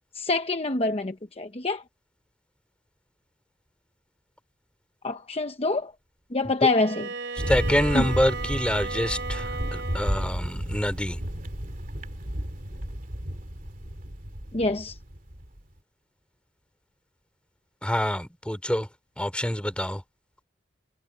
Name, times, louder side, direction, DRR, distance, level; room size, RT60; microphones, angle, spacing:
voice 1, 0.1-1.8 5.0-5.9 6.3-7.0 7.9-8.0 14.5-15.0, left 2 dB, 35° left, 0.9 m, -26 dB
Bowed string instrument, 6.7-10.4, right 4 dB, 65° right, 4.7 m, -35 dB
Thunder, 7.4-15.6, equal, 50° right, 2.7 m, -32 dB
voice 2, 7.5-11.2 17.8-18.9 19.2-20.0, equal, 5° left, 3.6 m, -26 dB
head